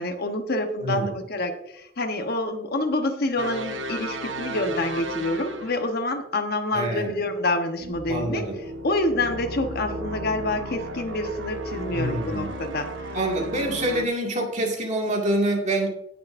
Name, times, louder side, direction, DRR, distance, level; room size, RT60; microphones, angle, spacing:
voice 1, 0.0-8.4 8.8-12.9, left 2 dB, 55° left, 6 dB, 1.1 m, -27 dB
voice 2, 0.8-1.1 6.7-7.1 8.1-8.6 11.9-12.5 13.1-15.9, right 1 dB, 40° right, 0 dB, 2.1 m, -26 dB
sound 1, 3.4-6.0 7.8-14.1, right 1 dB, 80° right, 1.2 m, -34 dB
18.0 x 6.7 x 2.6 m, 0.79 s
head